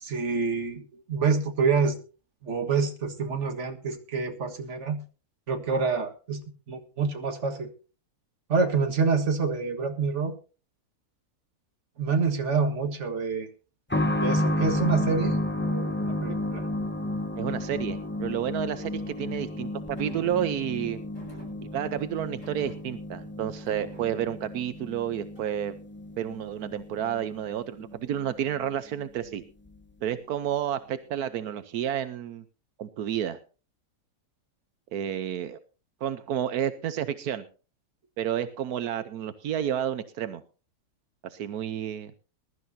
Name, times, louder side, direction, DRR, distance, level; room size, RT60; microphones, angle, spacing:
voice 1, 0.0-2.0 2.4-5.0 5.5-7.7 8.5-10.3 12.0-13.5 14.2-16.6, right 5 dB, 50° right, 5 dB, 1.9 m, -27 dB
sound 1, 13.9-28.3 28.6-28.7 29.7-29.8, left 1 dB, 10° left, 0.9 m, -32 dB
voice 2, 17.4-21.0 21.7-25.7 26.2-29.4 30.0-32.4 32.8-33.4 34.9-35.6 36.0-37.4 38.2-40.4 41.2-42.1, right 10 dB, 85° right, 12 dB, 1.3 m, -30 dB
sound 2, 20.0-20.5 21.1-22.0 22.4-23.2 23.6-24.4 25.3-25.7, right 2 dB, 55° left, 6.8 m, -49 dB
21.5 x 12.5 x 2.7 m, 0.35 s
omnidirectional pair, 1.6 m